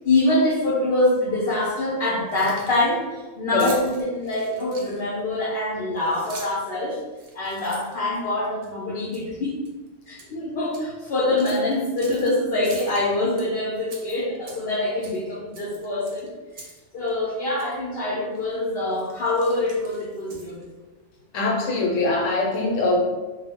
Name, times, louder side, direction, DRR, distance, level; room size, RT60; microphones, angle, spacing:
voice 1, 0.0-7.0 7.3-9.6 10.1-16.6 16.9-20.6, left 2 dB, 60° left, -6 dB, 0.7 m, -25 dB
Keys jangling, 2.2-2.9 3.6-5.2 6.0-6.7 7.1-8.7 9.1-9.3 9.7-10.3 10.7-10.8 11.4-12.3 12.6-13.4 13.9-14.8 15.0-15.2 15.5-16.8 17.1-17.2 17.6-17.7 18.3-18.6 18.9-20.7, right 3 dB, 60° right, 0.7 m, -43 dB
voice 2, 21.3-23.0, left 2 dB, 80° left, -1 dB, 1.0 m, -22 dB
2.3 x 2.0 x 3.5 m, 1.2 s
omnidirectional pair, 1.3 m